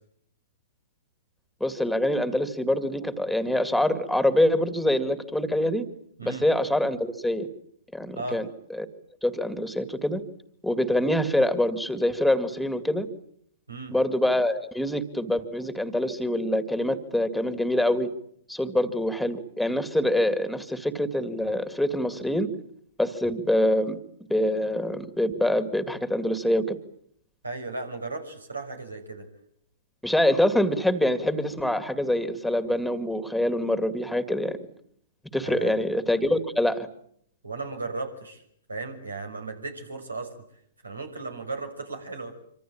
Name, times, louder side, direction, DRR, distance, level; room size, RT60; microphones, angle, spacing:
voice 1, 1.6-5.9 6.2-7.5 7.9-8.5 8.7-8.9 9.2-10.2 10.6-13.1 13.9-18.1 18.5-22.5 23.0-24.0 24.3-26.8 30.0-34.6 35.3-36.9, left 1 dB, ahead, 11 dB, 2.3 m, -25 dB
voice 2, 27.4-29.3 35.4-35.7 37.4-38.4 38.7-40.3 40.8-42.3, right 3 dB, 85° right, 6 dB, 6.2 m, -35 dB
26.0 x 25.5 x 8.8 m, 0.68 s
figure-of-eight pair, 115°, 0 cm